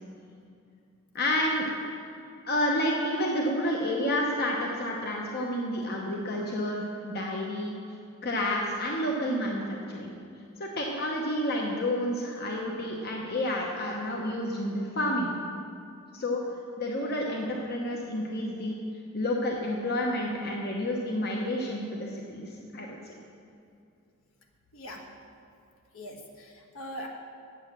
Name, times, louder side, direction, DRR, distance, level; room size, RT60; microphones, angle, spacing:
voice 1, 1.1-1.7 2.5-7.7 8.2-10.1 10.6-15.4 16.1-16.4 16.8-18.8 19.1-23.1, left 1 dB, 45° left, -1 dB, 1.0 m, -30 dB
voice 2, 25.9-27.1, equal, 70° left, 2 dB, 1.4 m, -41 dB
8.8 x 8.0 x 6.7 m, 2.5 s
head